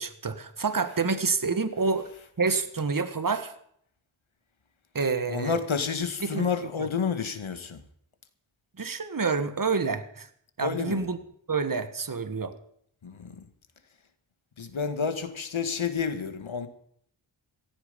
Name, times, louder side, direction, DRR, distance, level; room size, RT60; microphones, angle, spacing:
voice 1, 0.0-2.1 2.4-3.5 4.9-5.6 6.2-6.5 6.8-6.9 8.8-10.3 10.6-11.2 11.5-12.5, right 4 dB, 40° right, 1.6 m, -28 dB
voice 2, 5.3-7.8 10.6-11.0 13.0-13.5 14.6-16.7, left 6 dB, 70° left, 2.0 m, -30 dB
16.5 x 14.5 x 5.3 m
cardioid pair, 55°, 49 cm